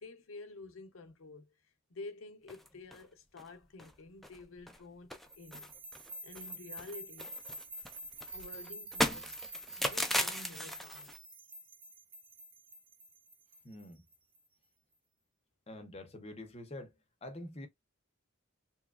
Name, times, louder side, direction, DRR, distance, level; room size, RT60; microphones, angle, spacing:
voice 1, 0.0-1.5 1.9-5.7 6.2-7.3 8.3-9.3 9.8-11.1, left 3 dB, 75° left, 0.6 m, -50 dB
sound 1, 2.5-3.0 3.4-3.5 3.8-3.9 4.2-4.8 5.1-6.5 6.8-11.2, left 1 dB, ahead, 0.3 m, -37 dB
sound 2, 5.3-14.4, right 1 dB, 25° right, 0.7 m, -48 dB
voice 2, 13.6-14.0 15.7-16.9 17.2-17.7, left 1 dB, 30° left, 0.7 m, -46 dB
2.9 x 2.3 x 2.3 m
head